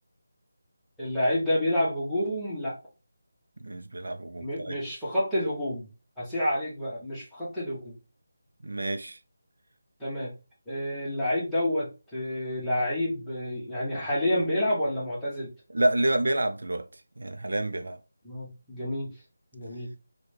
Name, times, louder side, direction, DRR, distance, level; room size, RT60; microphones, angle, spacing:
voice 1, 1.0-2.8 4.4-5.9 6.2-7.9 10.0-10.3 10.7-15.5 18.2-19.1 19.5-19.9, left 1 dB, ahead, 1.0 m, -29 dB
voice 2, 3.6-4.8 8.6-9.2 15.7-16.8 17.2-18.0, right 1 dB, 80° right, 0.4 m, -28 dB
3.7 x 2.2 x 3.1 m
figure-of-eight pair, 170°, 0 cm